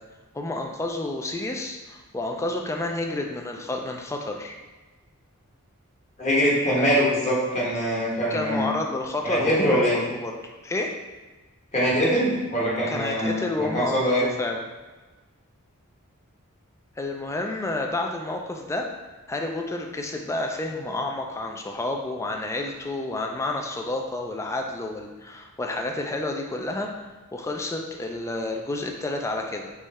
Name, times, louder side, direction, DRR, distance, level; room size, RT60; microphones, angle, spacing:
voice 1, 0.3-4.6 6.7-7.0 8.3-10.4 10.6-10.9 12.9-14.6 17.0-18.9 19.3-26.9 27.3-29.7, left 2 dB, 15° left, 2 dB, 0.3 m, -30 dB
voice 2, 6.2-8.7 9.2-10.0 11.7-14.2, equal, 30° left, -5 dB, 1.2 m, -23 dB
3.6 x 3.2 x 4.1 m, 1.2 s
head